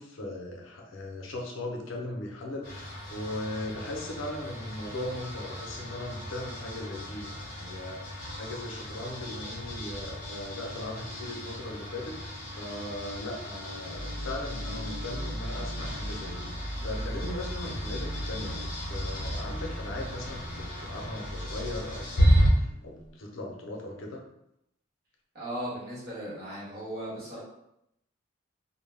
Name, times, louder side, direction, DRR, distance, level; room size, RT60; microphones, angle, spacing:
voice 1, 0.0-24.2, left 1 dB, 85° left, 0 dB, 0.5 m, -38 dB
sound 1, 2.6-22.5, equal, 45° left, 0.7 m, -33 dB
sound 2, 13.8-23.2, equal, 10° right, 0.6 m, -39 dB
voice 2, 25.3-27.4, right 1 dB, 50° right, -8 dB, 1.1 m, -37 dB
2.2 x 2.0 x 3.2 m, 0.79 s
head